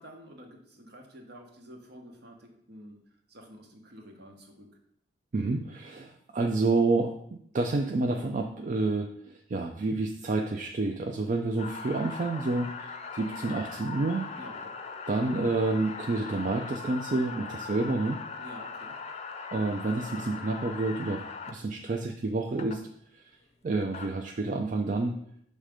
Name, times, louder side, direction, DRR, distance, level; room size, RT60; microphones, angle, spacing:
voice 1, 0.0-3.0 3.3-4.7 14.3-14.7 17.4-17.5 18.3-19.0, equal, 65° right, 3 dB, 1.1 m, -49 dB
voice 2, 5.3-14.3 15.1-18.2 19.5-21.2 21.5-22.8 23.6-25.1, right 3 dB, 45° right, 3 dB, 0.4 m, -29 dB
sound 1, 11.6-21.5 22.6-22.8 23.7-24.1, left 5 dB, 35° left, 0.5 m, -40 dB
6.4 x 3.3 x 5.0 m, 0.71 s
head